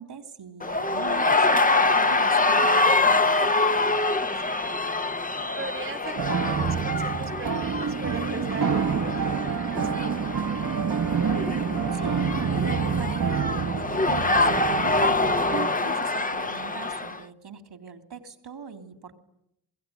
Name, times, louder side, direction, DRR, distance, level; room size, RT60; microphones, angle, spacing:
voice 1, 0.0-3.4 11.9-19.2, right 6 dB, 75° right, 7 dB, 3.1 m, -41 dB
sound 1, 0.6-17.2, left 3 dB, 20° left, 1.0 m, -25 dB
voice 2, 4.4-4.9 5.4-10.1 10.4-10.5, right 3 dB, 30° right, 7 dB, 1.5 m, -40 dB
sound 2, 6.2-15.7, right 6 dB, 55° right, 1.3 m, -27 dB
25.5 x 22.5 x 9.4 m, 0.80 s
cardioid pair, 55°, 40 cm